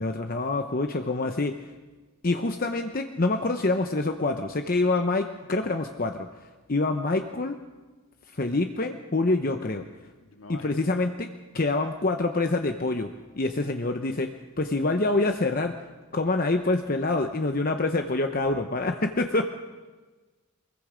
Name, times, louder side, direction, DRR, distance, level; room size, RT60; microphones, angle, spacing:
voice 1, 0.0-1.5 2.2-6.3 6.7-7.6 8.3-9.8 10.5-11.3 11.5-13.1 13.4-14.3 14.6-15.7 16.1-19.4, left 2 dB, 40° left, 5 dB, 0.8 m, -26 dB
voice 2, 10.2-10.9, left 2 dB, 65° left, 4 dB, 1.9 m, -46 dB
24.0 x 21.5 x 5.1 m, 1.3 s
head